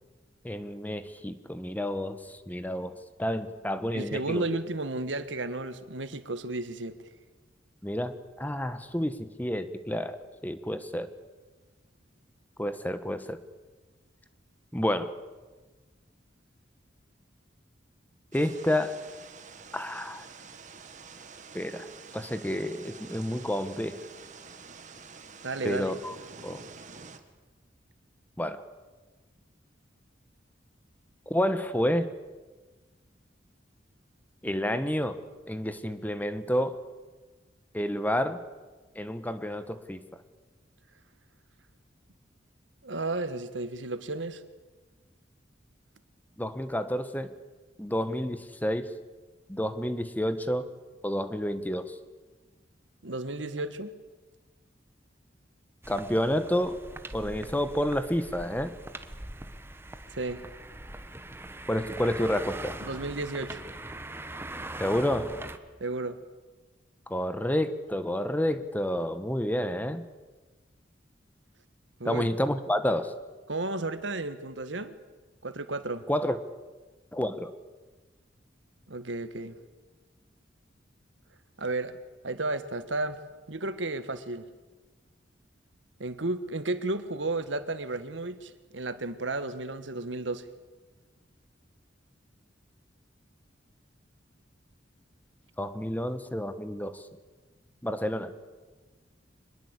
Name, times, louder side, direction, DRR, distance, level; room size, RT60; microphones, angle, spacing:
voice 1, 0.4-4.4 7.8-11.1 12.6-13.4 14.7-15.2 18.3-19.0 19.7-20.2 21.5-21.9 22.1-24.0 25.6-26.1 26.4-26.6 28.4-28.6 31.3-32.1 34.4-36.8 37.7-38.4 38.9-40.0 46.4-47.3 47.8-48.9 49.5-50.7 51.0-51.9 55.9-56.8 57.1-58.7 61.7-62.8 64.8-65.3 67.1-70.0 72.0-73.2 76.1-76.4 77.1-77.5 95.6-97.0 97.8-98.3, equal, 10° left, 11 dB, 1.3 m, -30 dB
voice 2, 3.9-7.0 25.4-25.9 42.8-44.4 53.0-53.9 60.2-60.4 62.8-63.6 65.8-66.2 72.0-72.3 73.5-74.9 75.4-76.0 78.9-79.5 81.6-81.9 82.2-83.2 83.5-84.5 86.0-90.5, right 2 dB, 90° right, 11 dB, 1.7 m, -33 dB
sound 1, 18.3-27.2, right 5 dB, 45° right, 1.9 m, -48 dB
sound 2, 55.8-65.6, right 1 dB, 15° right, 1.2 m, -42 dB
24.5 x 21.0 x 8.3 m, 1.3 s
head